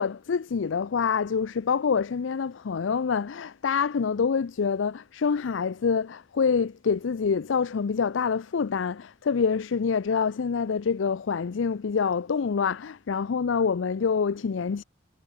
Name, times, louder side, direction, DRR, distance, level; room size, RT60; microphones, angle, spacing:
voice 1, 0.0-14.8, left 6 dB, 85° left, 0.5 m, -26 dB
head